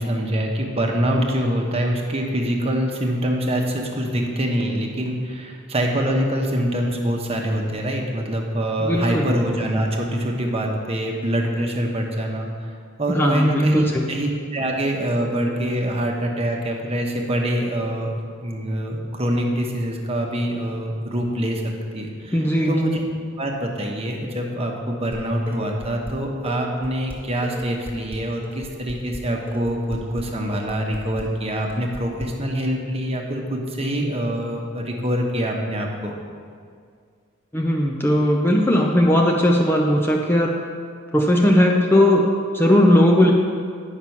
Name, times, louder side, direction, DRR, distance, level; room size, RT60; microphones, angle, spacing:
voice 1, 0.0-12.5 13.0-18.1 18.4-21.6 21.9-22.4 22.6-23.0 23.4-36.1, equal, 30° right, 1 dB, 1.0 m, -24 dB
voice 2, 8.8-9.3 13.1-14.1 22.3-22.7 37.5-40.6 41.1-42.3 42.5-43.3, left 1 dB, 10° left, 0 dB, 0.5 m, -17 dB
Dishes pots and pans, 25.1-26.1 26.5-32.3, equal, 10° right, 1.6 m, -37 dB
9.5 x 5.9 x 5.8 m, 2.1 s
head